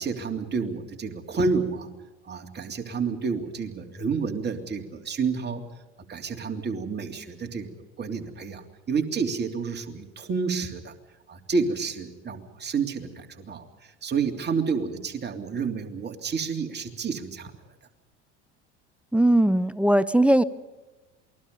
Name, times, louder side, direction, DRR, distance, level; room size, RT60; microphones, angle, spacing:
voice 1, 0.0-1.9 2.2-5.7 6.1-7.7 8.0-8.6 8.9-10.9 11.3-13.7 14.0-17.5, right 5 dB, 30° right, 3 dB, 3.2 m, -29 dB
voice 2, 19.1-20.4, right 1 dB, 5° right, 15 dB, 0.7 m, -19 dB
28.0 x 20.5 x 5.4 m, 1.1 s
hypercardioid pair, 70°, 35 cm